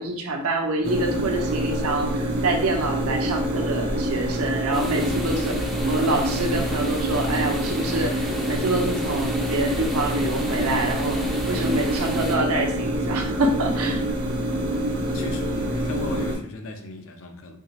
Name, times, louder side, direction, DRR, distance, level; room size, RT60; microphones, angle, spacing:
voice 1, 0.0-14.0, right 2 dB, 75° right, 0.7 m, -26 dB
sound 1, 0.8-16.4, right 1 dB, 40° right, 0.7 m, -26 dB
sound 2, 4.7-12.4, equal, ahead, 0.4 m, -35 dB
voice 2, 15.1-17.6, left 2 dB, 60° left, 0.6 m, -36 dB
4.5 x 2.9 x 2.8 m
head